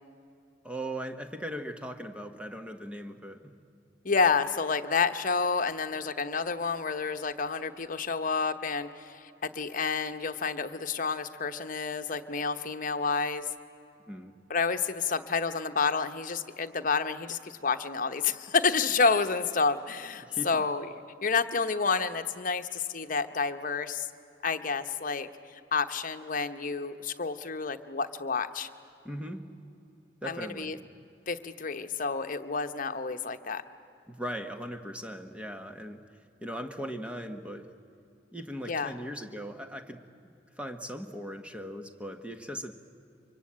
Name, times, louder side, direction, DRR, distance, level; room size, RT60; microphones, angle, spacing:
voice 1, 0.6-3.5 14.1-14.4 20.2-20.7 29.0-29.5 30.2-30.9 34.1-36.0 36.4-37.7 38.3-42.7, equal, 5° right, 6 dB, 1.3 m, -39 dB
voice 2, 4.0-13.5 14.5-20.9 21.2-24.1 24.4-28.7 30.2-30.8 31.3-33.6 38.7-38.9, left 5 dB, 50° left, 8 dB, 1.0 m, -29 dB
24.5 x 24.5 x 8.7 m, 2.7 s
head